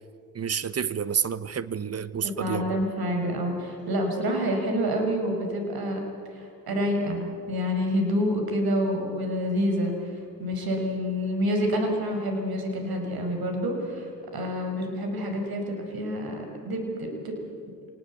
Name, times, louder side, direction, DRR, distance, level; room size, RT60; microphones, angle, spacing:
voice 1, 0.3-2.8, right 7 dB, 35° right, 16 dB, 1.1 m, -29 dB
voice 2, 2.2-6.0 6.3-10.1 10.4-17.4, equal, 55° right, 3 dB, 5.7 m, -28 dB
25.5 x 19.0 x 8.4 m, 2.4 s
hypercardioid pair, 60°, 45 cm